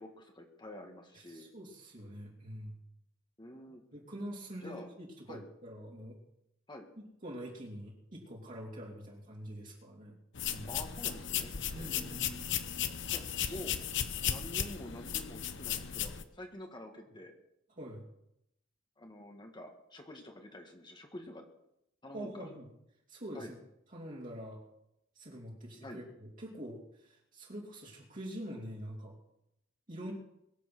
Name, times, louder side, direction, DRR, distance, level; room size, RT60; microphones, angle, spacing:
voice 1, 0.0-1.5 3.4-3.8 4.6-4.9 5.3-5.5 6.7-6.9 10.6-12.2 13.1-13.8 14.3-17.3 19.0-21.5 22.0-22.5 23.3-23.5 25.8-26.0, left 1 dB, 25° left, 3 dB, 1.8 m, -48 dB
voice 2, 1.1-2.8 3.9-6.2 7.2-10.2 10.5-10.7 11.7-12.7 17.8-18.0 22.1-22.7 23.1-23.6 23.9-24.6 25.1-29.2 29.9-30.1, equal, 40° right, -4 dB, 3.1 m, -45 dB
sound 1, 10.3-16.2, left 9 dB, 65° left, 1.0 m, -36 dB
22.5 x 7.6 x 6.1 m, 0.81 s
head